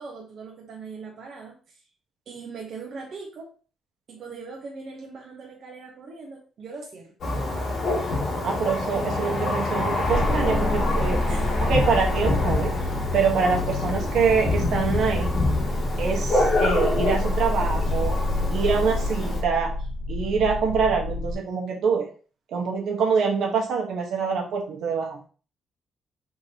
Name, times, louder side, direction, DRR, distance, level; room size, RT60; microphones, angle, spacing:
voice 1, 0.0-1.8 2.3-3.5 4.1-7.1 11.3-11.5, right 4 dB, 60° right, -1 dB, 0.9 m, -40 dB
Thunder, 7.2-19.4, left 2 dB, 60° left, 1.6 m, -26 dB
voice 2, 8.4-11.2 11.6-12.7 13.1-15.4 16.0-18.2 18.5-19.7 20.1-22.1 22.5-25.2, right 5 dB, 75° right, 1 dB, 1.2 m, -25 dB
sound 1, 10.1-21.3, left 2 dB, 35° left, 0.8 m, -28 dB
4.7 x 3.7 x 2.8 m, 0.39 s
cardioid pair, 90°, 0 cm